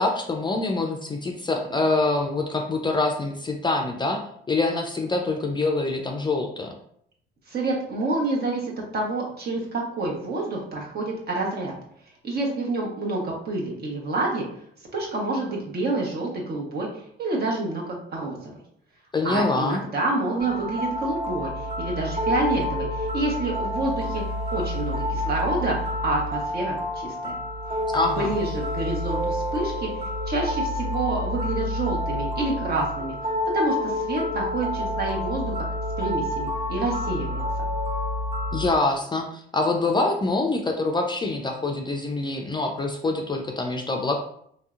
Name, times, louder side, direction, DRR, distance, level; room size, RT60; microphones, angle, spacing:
voice 1, 0.0-4.2 4.5-6.7 19.1-19.8 27.9-28.3 38.5-44.2, left 2 dB, 25° left, 2 dB, 0.4 m, -25 dB
voice 2, 7.5-11.7 12.2-14.4 14.9-16.9 17.2-18.5 19.2-21.5 21.8-24.2 24.5-27.4 28.2-29.9 30.3-33.2 33.5-35.6 36.0-37.4, right 2 dB, 55° right, -2 dB, 1.1 m, -28 dB
sound 1, 20.4-38.7, left 1 dB, 30° right, 1.0 m, -28 dB
3.2 x 2.7 x 2.4 m, 0.67 s
cardioid pair, 90°, 20 cm